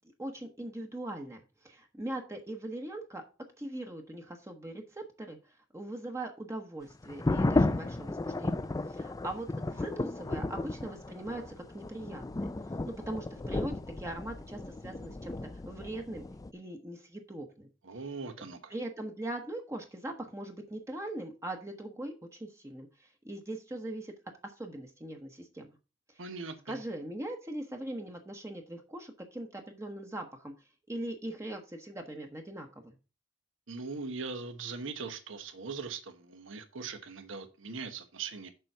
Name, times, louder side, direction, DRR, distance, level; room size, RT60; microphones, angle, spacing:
voice 1, 0.2-3.2 3.6-12.5 12.8-16.2 16.5-17.7 18.4-24.1 24.4-25.7 26.7-30.5 30.9-32.9, right 1 dB, 15° right, 1.0 m, -41 dB
sound 1, 7.0-16.5, left 2 dB, 20° left, 0.4 m, -33 dB
voice 2, 17.8-18.7 26.2-26.8 33.7-38.5, right 4 dB, 75° right, 1.1 m, -40 dB
6.9 x 4.5 x 6.6 m
head